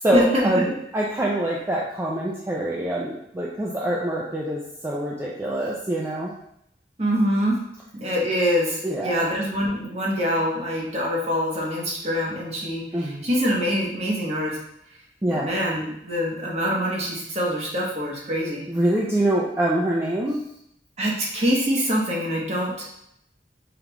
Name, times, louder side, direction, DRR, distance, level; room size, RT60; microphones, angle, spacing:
voice 1, 0.0-6.3 8.8-9.3 12.9-13.2 15.2-15.5 18.7-20.4, right 1 dB, 15° right, -5 dB, 0.4 m, -25 dB
voice 2, 7.0-7.6 7.9-14.6 15.3-18.6 21.0-22.9, equal, 35° right, -4 dB, 1.0 m, -25 dB
4.9 x 2.4 x 3.0 m, 0.75 s
head